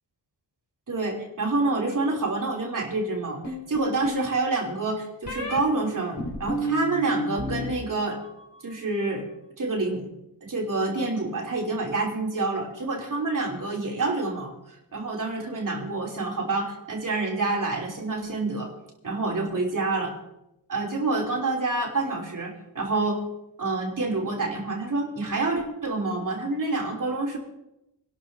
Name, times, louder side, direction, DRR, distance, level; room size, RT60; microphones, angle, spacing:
voice 1, 0.9-8.2 8.6-9.3 9.6-10.1 10.4-18.7 19.0-20.1 20.7-23.2 23.6-27.4, right 3 dB, 45° right, -1 dB, 3.2 m, -27 dB
sound 1, 3.4-4.3 5.3-5.6 6.2-7.7 8.0-8.6, equal, 40° left, 4.7 m, -31 dB
25.5 x 12.0 x 2.8 m, 0.85 s
cardioid pair, 90°, 45 cm